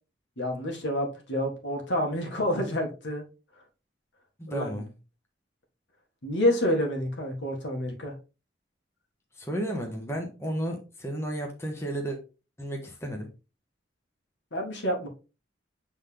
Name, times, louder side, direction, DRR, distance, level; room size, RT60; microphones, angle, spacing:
voice 1, 0.4-3.2 4.5-4.8 6.2-8.1 14.5-15.1, left 1 dB, 80° left, 1 dB, 1.8 m, -28 dB
voice 2, 4.4-4.9 9.4-12.2 12.6-13.3, right 1 dB, 15° left, 1 dB, 1.1 m, -33 dB
7.2 x 4.0 x 3.3 m, 0.31 s
head